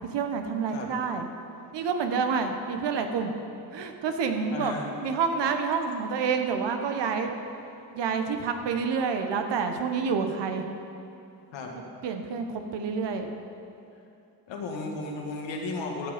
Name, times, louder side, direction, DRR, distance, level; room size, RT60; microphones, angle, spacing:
voice 1, 0.1-1.3 1.7-3.3 3.7-4.7 5.0-7.3 7.9-10.7 12.0-13.3, right 5 dB, 65° right, 6 dB, 1.2 m, -28 dB
voice 2, 4.5-5.1 11.5-11.7 14.5-16.1, left 3 dB, 80° left, 0 dB, 1.8 m, -34 dB
12.5 x 7.0 x 5.1 m, 2.7 s
supercardioid pair, 65°, 45 cm